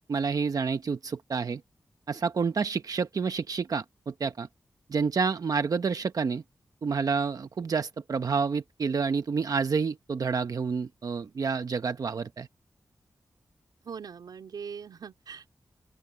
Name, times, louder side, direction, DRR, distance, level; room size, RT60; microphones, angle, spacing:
voice 1, 0.1-1.6 2.1-4.5 4.9-6.4 6.8-12.5, right 5 dB, 60° right, 0.9 m, -29 dB
voice 2, 13.8-15.5, right 6 dB, 90° right, 4.3 m, -41 dB
open air
cardioid pair, 75°, 7 cm